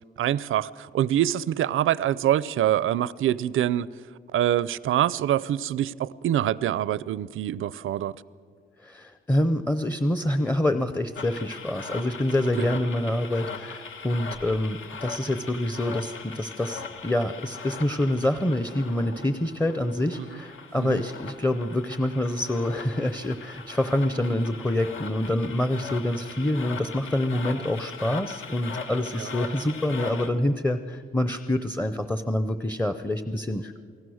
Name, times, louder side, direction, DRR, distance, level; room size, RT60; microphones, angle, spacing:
voice 1, 0.2-3.9 4.3-8.1 12.6-12.7 20.2-20.4 20.8-21.0 29.1-29.3, right 11 dB, 80° right, 0.5 m, -25 dB
voice 2, 8.8-33.8, left 1 dB, 10° left, 0.6 m, -26 dB
sound 1, 11.2-30.3, left 5 dB, 75° left, 1.7 m, -40 dB
28.5 x 19.0 x 6.4 m
wide cardioid pair, 140°, 20 cm